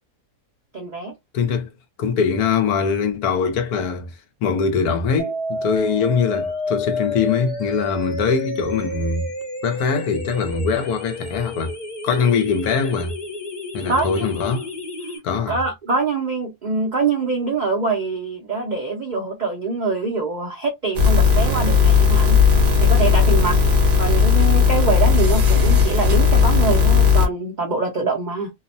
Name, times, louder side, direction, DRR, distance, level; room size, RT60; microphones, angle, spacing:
voice 1, 0.7-1.1 13.9-14.3 15.5-22.4 22.8-23.6 24.0-28.5, right 4 dB, 85° right, 0.4 m, -24 dB
voice 2, 1.3-1.7 2.0-4.1 4.4-9.3 9.6-11.8 12.0-13.1 13.7-14.7 15.2-15.6, left 5 dB, 75° left, 1.2 m, -22 dB
sound 1, 5.2-15.2, left 2 dB, 35° left, 0.8 m, -30 dB
sound 2, 20.9-27.3, left 6 dB, 45° right, 0.9 m, -16 dB
2.8 x 2.1 x 2.6 m
omnidirectional pair, 1.6 m